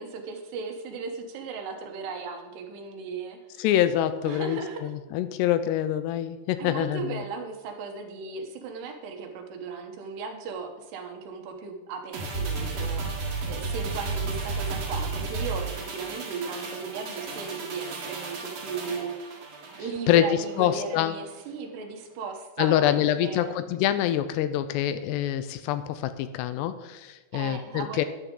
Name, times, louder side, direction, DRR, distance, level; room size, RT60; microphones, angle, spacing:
voice 1, 0.0-3.7 4.3-4.8 6.6-19.5 19.8-23.6 27.3-28.1, right 5 dB, 75° right, 4 dB, 3.2 m, -36 dB
voice 2, 3.6-7.2 20.1-21.1 22.6-28.1, left 11 dB, 85° left, 11 dB, 2.6 m, -25 dB
sound 1, 12.1-20.7 21.0-21.1, right 3 dB, 50° right, 2.2 m, -33 dB
13.0 x 11.0 x 3.8 m, 1.1 s
omnidirectional pair, 5.0 m